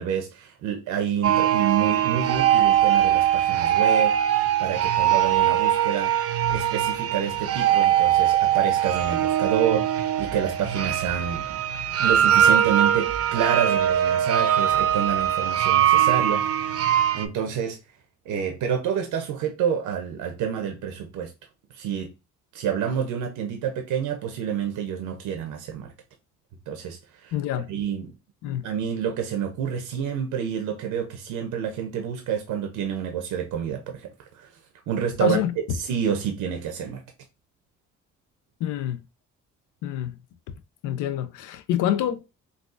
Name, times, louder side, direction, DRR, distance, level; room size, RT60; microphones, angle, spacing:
voice 1, 0.0-4.3 4.6-6.1 6.5-11.6 12.0-16.7 17.1-17.8 18.3-21.3 21.7-22.1 22.5-25.9 26.7-27.3 27.7-28.1 28.6-34.1 34.3-34.5 34.9-35.4 35.7-37.0, right 8 dB, 90° right, 0.7 m, -28 dB
sound 1, 1.2-17.2, right 10 dB, 50° right, 0.5 m, -21 dB
voice 2, 27.3-27.7 28.4-28.7 35.2-35.5 38.6-39.0 39.8-40.2 40.8-42.2, left 11 dB, 90° left, 0.5 m, -27 dB
3.9 x 2.4 x 2.4 m
cardioid pair, 90°, 30 cm